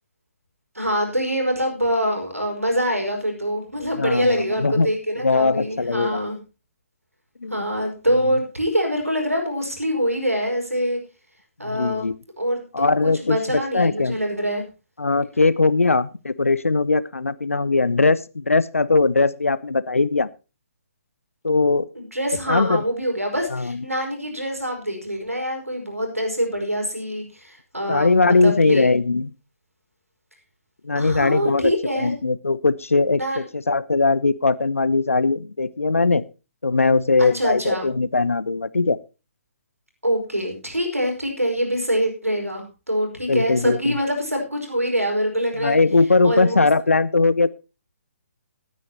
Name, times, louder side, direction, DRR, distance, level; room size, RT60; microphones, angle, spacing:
voice 1, 0.8-6.4 7.5-11.0 11.6-12.1 12.4-14.6 22.0-28.9 31.0-32.1 33.2-33.4 37.2-37.9 40.0-45.8 46.2-46.7, equal, 85° right, 2 dB, 5.3 m, -24 dB
voice 2, 4.0-4.9 5.2-6.2 7.4-7.7 11.6-12.2 12.7-14.2 15.0-20.3 21.4-21.9 22.5-22.8 23.5-23.8 27.9-29.3 30.8-31.7 32.0-36.2 36.6-39.0 43.3-43.9 45.6-47.5, left 3 dB, 75° left, 18 dB, 0.8 m, -20 dB
19.5 x 9.6 x 2.9 m, 0.30 s
figure-of-eight pair, 135°, 8 cm